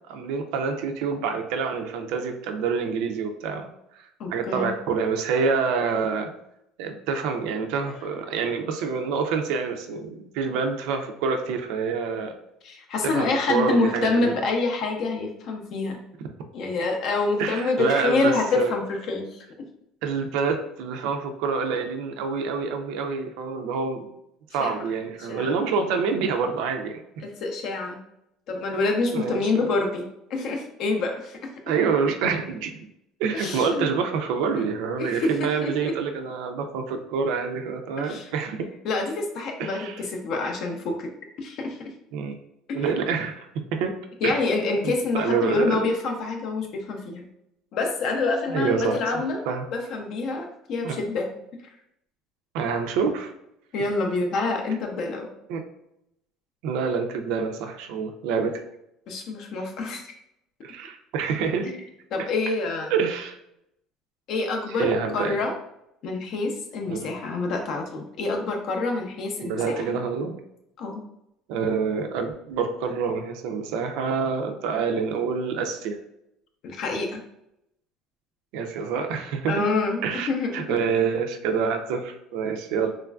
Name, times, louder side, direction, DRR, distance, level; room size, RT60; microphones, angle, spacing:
voice 1, 0.1-3.7 3.9-4.0 4.3-6.3 6.8-12.3 13.0-14.3 17.4-18.7 20.0-24.1 24.5-27.0 29.1-29.4 31.7-32.9 33.2-38.7 39.6-39.9 42.1-42.4 42.7-44.0 44.2-44.4 44.8-45.9 48.5-49.0 49.5-49.7 50.8-51.1 52.5-53.3 55.5-55.6 56.6-58.6 60.6-61.7 62.9-63.4 64.8-65.4 66.9-67.1 69.4-70.3 71.5-76.0 78.5-79.5 80.0-82.9, right 5 dB, 70° right, 5 dB, 0.3 m, -27 dB
voice 2, 4.2-4.7 12.6-16.0 16.5-19.7 24.6-24.9 25.2-25.6 27.2-28.0 28.5-31.5 33.3-33.9 34.5-34.6 35.0-35.9 38.0-38.3 38.8-41.1 41.4-41.9 42.7-42.9 44.2-47.3 47.7-49.4 49.7-51.3 53.7-55.3 59.1-60.0 61.7-61.8 62.1-62.9 64.3-65.5 66.0-69.9 70.8-71.0 76.6-77.2 79.5-80.8, left 3 dB, 50° left, 2 dB, 0.4 m, -27 dB
3.0 x 2.3 x 2.2 m, 0.80 s
cardioid pair, 165°, 0 cm